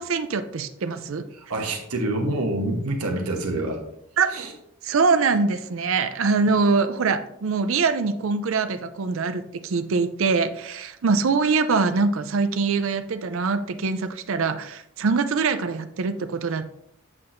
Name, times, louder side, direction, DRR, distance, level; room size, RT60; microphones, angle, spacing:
voice 1, 0.0-1.2 4.2-4.3 4.8-16.7, right 4 dB, 65° right, 10 dB, 0.5 m, -23 dB
voice 2, 1.3-3.8 4.3-4.5, right 2 dB, 80° right, 3 dB, 1.1 m, -27 dB
7.5 x 5.9 x 2.6 m, 0.75 s
head